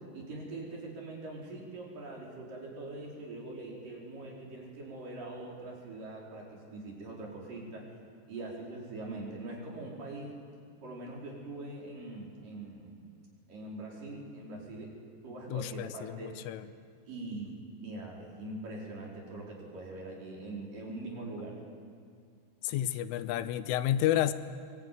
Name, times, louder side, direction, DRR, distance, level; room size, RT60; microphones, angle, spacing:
voice 1, 0.1-7.9 8.3-10.4 10.8-13.0 13.5-14.9 15.2-16.4 17.1-17.5 17.8-21.6, right 2 dB, 45° right, -3 dB, 6.1 m, -42 dB
voice 2, 15.5-16.7 22.6-24.3, left 12 dB, 85° left, 12 dB, 3.4 m, -30 dB
23.5 x 23.0 x 9.4 m, 2.2 s
omnidirectional pair, 5.6 m